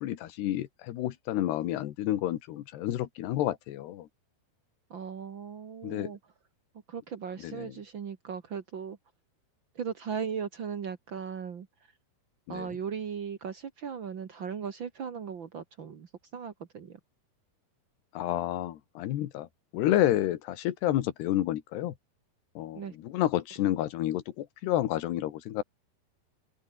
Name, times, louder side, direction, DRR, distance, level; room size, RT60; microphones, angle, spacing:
voice 1, 0.0-4.1 5.8-6.1 7.4-7.7 12.5-12.7 18.2-19.5 19.7-21.9 22.6-25.6, left 13 dB, 80° left, 3.5 m, -30 dB
voice 2, 4.9-6.2 6.9-9.0 9.7-11.7 12.5-17.0 22.7-22.9, right 7 dB, 75° right, 1.1 m, -37 dB
omnidirectional pair, 4.7 m